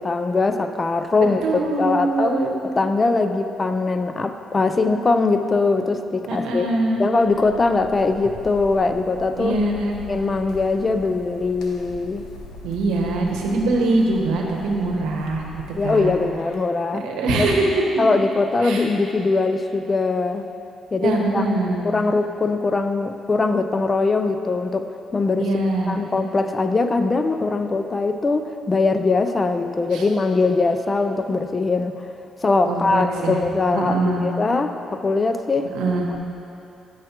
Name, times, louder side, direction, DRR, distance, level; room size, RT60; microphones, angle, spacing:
voice 1, 0.0-2.4 2.6-6.7 7.0-9.6 10.1-12.3 15.8-17.1 17.3-17.5 18.0-20.5 20.9-21.4 21.8-24.9 25.1-25.5 25.9-32.0 32.4-35.7 36.1-36.2, left 3 dB, 30° left, 8 dB, 0.4 m, -21 dB
voice 2, 1.4-2.6 6.3-7.0 9.4-10.0 12.6-16.1 17.0-17.8 18.6-18.9 21.0-21.9 25.4-26.0 29.9-30.1 32.7-33.4 33.7-34.3 35.7-36.1, right 2 dB, 90° right, 1 dB, 0.8 m, -23 dB
sound 1, 7.2-16.6, left 1 dB, 85° left, 0.7 m, -41 dB
8.9 x 6.2 x 2.9 m, 2.7 s
cardioid pair, 90°, 0 cm